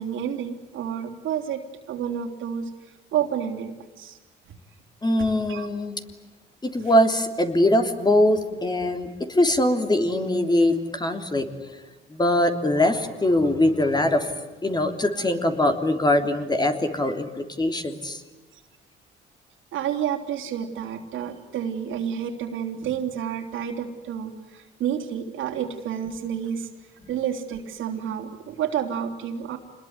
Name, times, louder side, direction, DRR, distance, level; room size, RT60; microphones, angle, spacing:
voice 1, 0.0-2.7 3.1-4.2 4.4-4.5 5.5-5.7 19.7-26.7 27.1-29.6, right 9 dB, 80° right, 3 dB, 3.6 m, -30 dB
voice 2, 5.0-6.0 6.6-11.5 12.1-14.3 14.6-18.2, left 1 dB, 20° left, 6 dB, 3.3 m, -22 dB
27.0 x 21.0 x 9.7 m, 1.2 s
cardioid pair, 90°, 20 cm